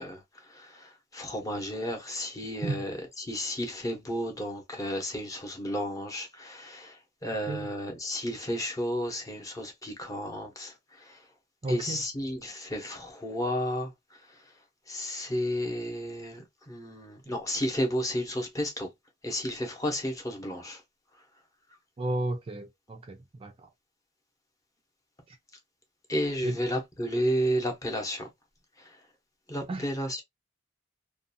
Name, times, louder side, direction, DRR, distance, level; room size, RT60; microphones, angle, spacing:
voice 1, 0.0-11.2 11.7-13.9 14.3-14.5 14.9-18.9 19.2-20.8 26.1-28.3 28.8-29.0 29.5-30.2, equal, 15° left, 0.7 m, -32 dB
voice 2, 11.6-12.0 22.0-23.7 25.3-25.4 26.4-26.6 29.7-29.9, right 2 dB, 30° right, 0.3 m, -33 dB
2.5 x 2.2 x 2.6 m
head